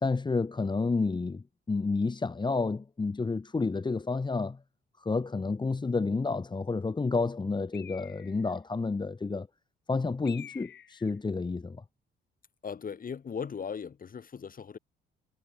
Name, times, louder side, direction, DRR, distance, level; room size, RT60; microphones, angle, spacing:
voice 1, 0.0-4.6 5.0-9.5 9.9-11.8, left 4 dB, 20° left, 1.4 m, -30 dB
Bird, 7.7-8.6 10.3-11.2, left 10 dB, 65° left, 4.7 m, -49 dB
voice 2, 12.6-14.8, left 6 dB, 45° left, 5.9 m, -38 dB
cardioid pair, 90°, 20 cm